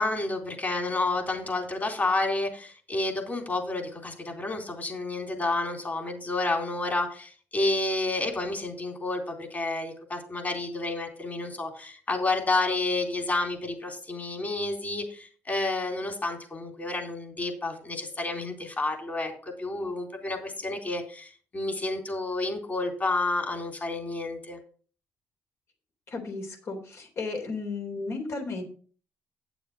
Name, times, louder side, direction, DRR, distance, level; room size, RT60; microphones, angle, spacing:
voice 1, 0.0-24.6, left 2 dB, 30° left, 3 dB, 3.8 m, -30 dB
voice 2, 26.1-28.6, left 3 dB, 55° left, 3 dB, 3.5 m, -34 dB
9.4 x 7.1 x 5.1 m, 0.40 s
cardioid pair, 80°, 6 cm